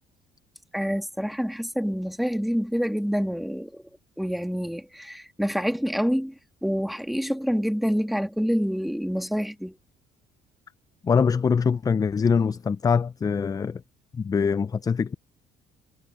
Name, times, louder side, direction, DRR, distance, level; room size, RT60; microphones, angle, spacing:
voice 1, 0.7-3.7 4.2-6.3 6.6-9.7, equal, ahead, 2.3 m, -27 dB
voice 2, 11.0-13.8 14.2-15.2, left 6 dB, 20° left, 0.4 m, -23 dB
cardioid pair, 110°, 17 cm